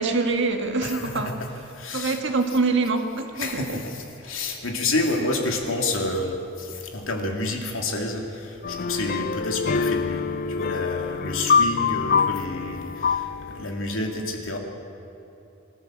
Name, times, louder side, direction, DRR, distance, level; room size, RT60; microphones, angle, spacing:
voice 1, 0.0-1.4 1.9-3.8, right 3 dB, 60° right, 4 dB, 1.8 m, -25 dB
voice 2, 0.8-1.3 1.7-2.2 3.4-13.3 13.5-14.6, left 2 dB, 75° left, 2 dB, 2.7 m, -29 dB
sound 1, 8.6-13.6, left 5 dB, 45° left, 0.4 m, -25 dB
25.0 x 14.0 x 7.5 m, 3.0 s
head